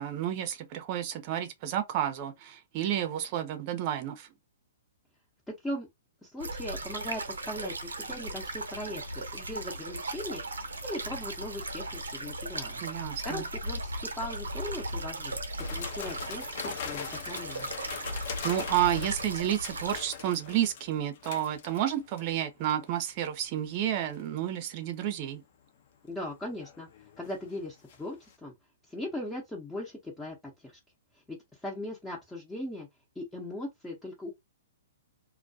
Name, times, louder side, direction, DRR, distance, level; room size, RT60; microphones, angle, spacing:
voice 1, 0.0-4.3 12.8-13.4 18.4-25.4, right 11 dB, 40° right, 0.6 m, -31 dB
voice 2, 6.2-10.4 10.8-12.8 13.2-15.4 15.7-17.7 26.0-26.9 27.2-28.5 28.9-30.7 31.3-32.9 33.2-34.3, left 1 dB, 10° left, 0.7 m, -39 dB
sound 1, 6.4-20.0, right 2 dB, 90° right, 0.6 m, -37 dB
sound 2, 15.6-22.3 22.7-23.0 23.7-24.2 26.4-28.0 28.3-28.4, left 7 dB, 55° left, 0.6 m, -41 dB
2.2 x 2.2 x 2.6 m
hypercardioid pair, 130°, 0 cm